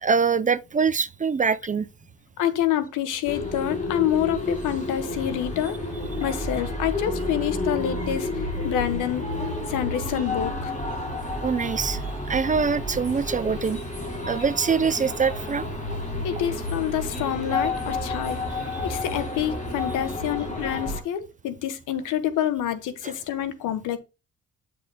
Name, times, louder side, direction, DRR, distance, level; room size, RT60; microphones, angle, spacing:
voice 1, 0.0-1.9 11.4-13.8 14.3-15.7, right 5 dB, 25° right, 0.5 m, -24 dB
voice 2, 2.4-5.8 6.2-8.3 8.6-9.3 9.7-10.7 16.2-18.4 18.8-24.0, left 11 dB, 90° left, 1.3 m, -27 dB
sound 1, 3.3-21.0, left 2 dB, 25° left, 4.3 m, -30 dB
9.1 x 6.8 x 2.3 m
cardioid pair, 90°, 30 cm